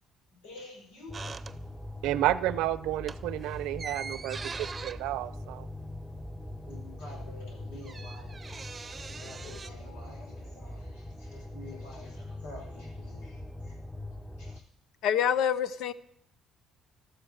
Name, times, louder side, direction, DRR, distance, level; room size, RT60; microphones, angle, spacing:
voice 1, 0.3-1.2 6.6-8.5 8.9-13.8 14.4-14.6, left 2 dB, 85° left, 5.3 m, -49 dB
sound 1, 1.1-14.6, left 1 dB, 5° left, 0.9 m, -42 dB
sound 2, 1.1-2.1 2.4-2.6 2.9-6.4 6.7-6.8 7.0-9.7, right 4 dB, 30° right, 0.8 m, -43 dB
voice 2, 2.0-5.7, right 14 dB, 80° right, 0.6 m, -31 dB
voice 3, 15.0-15.9, left 9 dB, 70° left, 0.8 m, -26 dB
13.5 x 12.5 x 6.4 m
supercardioid pair, 75°, 0 cm